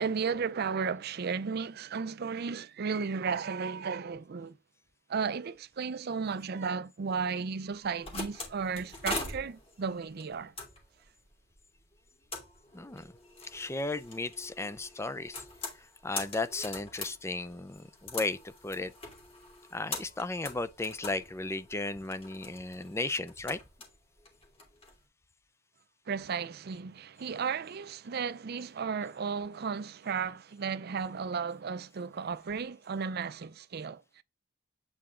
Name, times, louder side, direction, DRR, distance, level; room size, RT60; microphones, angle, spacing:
voice 1, 0.0-4.6 5.1-10.5 26.1-34.2, right 5 dB, 50° right, 0.5 m, -34 dB
sound 1, 7.7-25.0, left 3 dB, 30° left, 2.9 m, -43 dB
voice 2, 12.7-13.1 13.4-15.4 15.8-18.9 19.7-23.6, left 2 dB, 15° left, 0.4 m, -35 dB
8.9 x 4.2 x 3.7 m
head